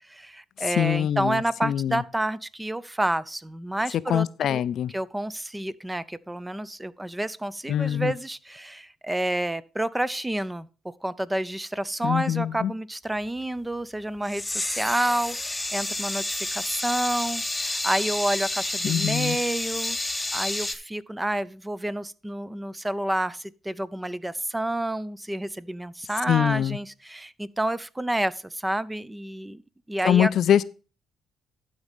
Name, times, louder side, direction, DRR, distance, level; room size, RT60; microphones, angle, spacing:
voice 1, 0.1-4.6 4.9-29.6 29.9-30.3, right 1 dB, 10° right, 0.4 m, -29 dB
voice 2, 0.7-2.0 4.1-4.9 7.7-8.1 12.0-12.7 18.8-19.4 26.3-26.8 30.0-30.6, left 10 dB, 65° left, 0.4 m, -24 dB
sound 1, 14.2-20.8, left 2 dB, 10° left, 0.8 m, -30 dB
12.0 x 4.1 x 5.1 m
cardioid pair, 90°, 0 cm